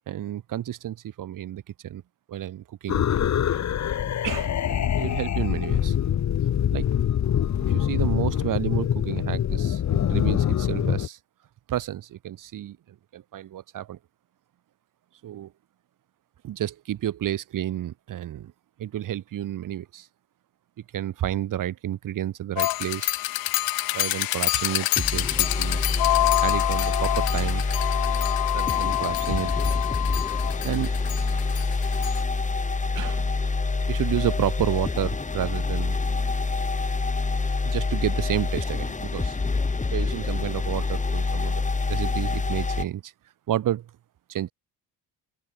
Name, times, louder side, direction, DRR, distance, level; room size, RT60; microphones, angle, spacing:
voice 1, 0.1-2.0 2.3-3.0 4.2-6.0 6.7-6.9 7.7-11.2 11.7-12.8 13.1-14.0 15.2-15.5 16.4-18.5 18.8-20.1 20.9-23.1 23.9-25.8 26.4-27.6 28.5-29.5 30.6-30.9 32.9-33.3 33.9-36.0 37.6-39.4 39.9-41.6 41.9-43.1 43.5-43.9 44.3-44.5, right 12 dB, 60° right, 3.3 m, -30 dB
sound 1, 2.9-11.1, left 10 dB, 50° left, 2.6 m, -24 dB
sound 2, 22.6-32.2, left 17 dB, 80° left, 2.1 m, -26 dB
sound 3, 25.0-42.8, left 3 dB, 20° left, 4.4 m, -26 dB
open air
cardioid pair, 105°, 36 cm